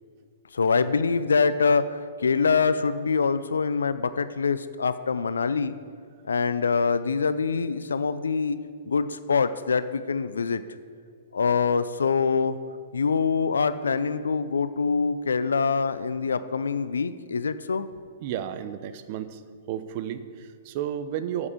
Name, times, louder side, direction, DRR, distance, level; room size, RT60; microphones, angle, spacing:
voice 1, 0.5-5.7 6.2-8.6 8.9-10.6 11.3-12.6 12.9-17.9, left 5 dB, 75° left, 13 dB, 0.5 m, -24 dB
voice 2, 18.2-19.4 19.7-21.5, right 10 dB, 45° right, 11 dB, 0.8 m, -32 dB
8.5 x 8.2 x 8.4 m, 2.1 s
figure-of-eight pair, 115°, 0 cm